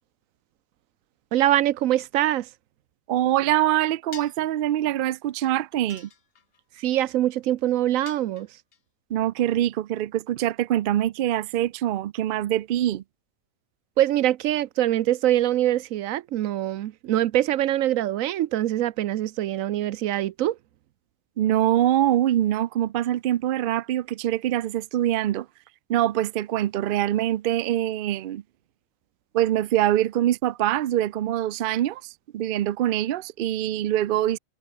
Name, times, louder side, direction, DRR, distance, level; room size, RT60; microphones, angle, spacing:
voice 1, 1.3-2.5 6.8-8.5 14.0-20.6, right 13 dB, 85° right, 1.0 m, -23 dB
voice 2, 3.1-6.1 9.1-13.0 21.4-25.5 25.9-28.4 29.3-34.4, right 12 dB, 65° right, 0.5 m, -24 dB
sound 1, 4.1-4.5 5.9-6.6 8.1-8.8, left 7 dB, 50° left, 1.2 m, -46 dB
omnidirectional pair, 1.4 m